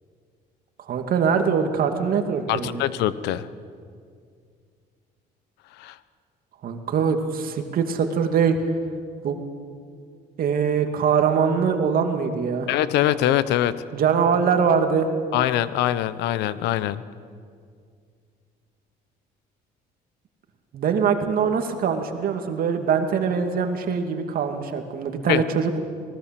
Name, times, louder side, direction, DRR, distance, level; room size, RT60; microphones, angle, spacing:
voice 1, 0.9-2.8 6.6-8.6 9.2-9.4 10.4-12.7 13.9-15.1 20.7-25.8, right 6 dB, 60° right, 5 dB, 2.4 m, -22 dB
voice 2, 2.5-3.5 5.8-6.0 12.7-13.7 15.3-17.0 25.3-25.4, left 12 dB, 85° left, 15 dB, 0.9 m, -23 dB
25.5 x 19.0 x 7.6 m, 2.2 s
cardioid pair, 110°, 17 cm